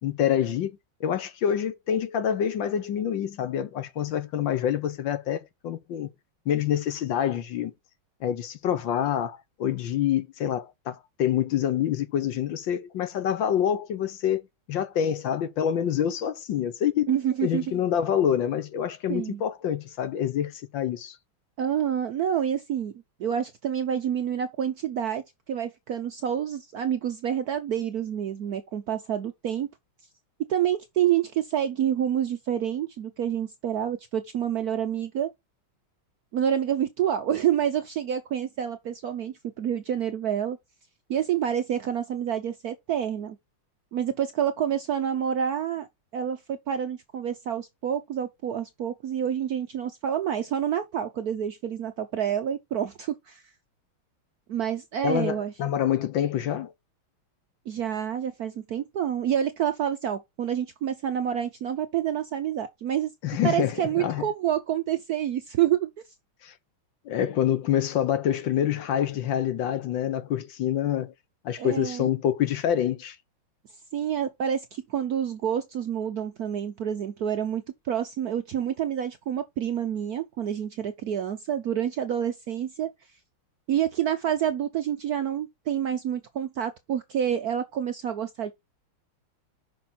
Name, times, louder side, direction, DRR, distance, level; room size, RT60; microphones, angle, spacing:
voice 1, 0.0-6.1 6.5-7.7 8.2-14.4 14.7-17.1 17.4-21.2 55.0-56.7 63.2-64.3 66.4-66.5 67.0-71.1 71.4-73.2, left 10 dB, 70° left, 1.5 m, -26 dB
voice 2, 17.1-17.8 19.1-19.4 21.6-22.9 23.2-29.7 30.4-35.3 36.3-40.6 41.1-43.4 43.9-45.9 46.1-53.4 54.5-55.5 57.7-63.1 63.4-65.9 71.6-72.1 73.9-82.9 83.7-88.5, right 9 dB, 65° right, 0.9 m, -28 dB
6.9 x 5.3 x 4.1 m
omnidirectional pair, 2.3 m